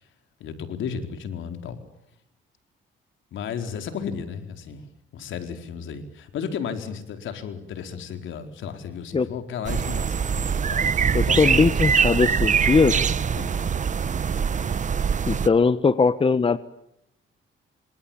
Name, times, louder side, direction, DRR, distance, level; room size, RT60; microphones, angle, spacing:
voice 1, 0.4-1.8 3.3-4.8 5.1-11.8 13.4-13.6, left 7 dB, 75° left, 7 dB, 4.5 m, -34 dB
sound 1, 9.6-15.5, right 6 dB, 40° right, 1.0 m, -23 dB
voice 2, 11.1-13.0 15.3-16.6, left 4 dB, 25° left, 14 dB, 1.4 m, -20 dB
29.0 x 26.0 x 7.3 m, 0.81 s
cardioid pair, 90°, 20 cm